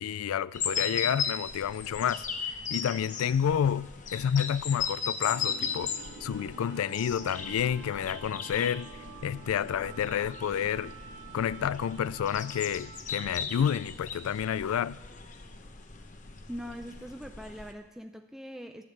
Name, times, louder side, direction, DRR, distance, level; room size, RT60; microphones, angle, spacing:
voice 1, 0.0-5.9 6.2-8.9 9.2-10.9 11.3-15.0, left 8 dB, 90° left, 0.3 m, -29 dB
sound 1, 0.5-17.7, left 6 dB, 35° left, 0.8 m, -37 dB
sound 2, 5.2-13.4, right 3 dB, 70° right, 1.1 m, -48 dB
voice 2, 16.5-18.8, equal, ahead, 0.4 m, -42 dB
12.0 x 7.8 x 9.2 m
head